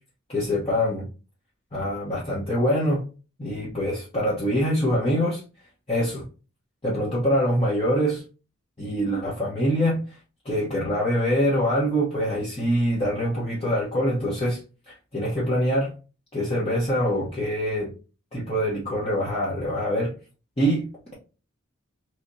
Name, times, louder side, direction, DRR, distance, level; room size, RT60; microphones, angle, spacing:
voice 1, 0.3-1.1 1.7-3.0 3.4-5.4 5.9-6.2 6.8-8.2 8.8-10.2 10.4-14.6 14.9-15.9 16.3-17.9 18.3-20.1 20.6-21.1, equal, 30° left, -7 dB, 1.0 m, -24 dB
3.3 x 2.9 x 2.6 m, 0.33 s
head